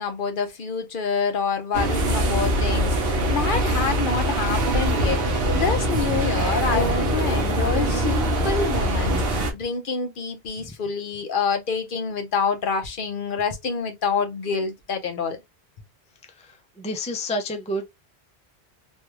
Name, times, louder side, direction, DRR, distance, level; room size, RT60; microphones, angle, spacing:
voice 1, 0.0-15.4, left 5 dB, 55° left, 0.9 m, -27 dB
sound 1, 1.7-9.5, right 1 dB, 60° right, 1.0 m, -23 dB
voice 2, 16.4-17.9, left 1 dB, 10° left, 0.3 m, -30 dB
3.3 x 2.3 x 3.0 m
omnidirectional pair, 1.1 m